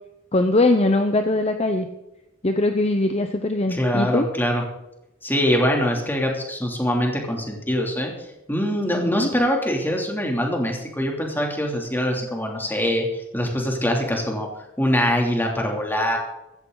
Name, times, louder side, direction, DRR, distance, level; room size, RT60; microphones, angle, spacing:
voice 1, 0.3-1.9 2.4-4.3 8.9-9.3, left 2 dB, 30° left, 6 dB, 0.9 m, -21 dB
voice 2, 3.7-4.6 5.2-8.1 8.5-13.1 13.3-14.5 14.8-16.2, equal, 10° left, 0 dB, 3.1 m, -23 dB
15.5 x 14.5 x 4.1 m, 0.90 s
head